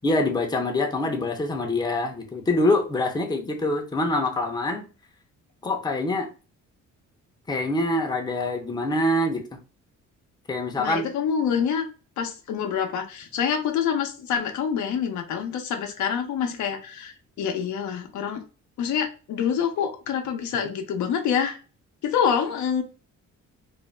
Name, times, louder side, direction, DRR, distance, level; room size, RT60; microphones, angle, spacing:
voice 1, 0.0-4.9 5.6-6.3 7.5-9.4 10.5-11.1, left 2 dB, 15° left, 3 dB, 0.6 m, -25 dB
voice 2, 10.8-11.9 12.2-18.4 18.8-21.6 22.0-22.8, left 7 dB, 70° left, 4 dB, 0.6 m, -26 dB
2.5 x 2.1 x 3.1 m, 0.34 s
cardioid pair, 90°, 30 cm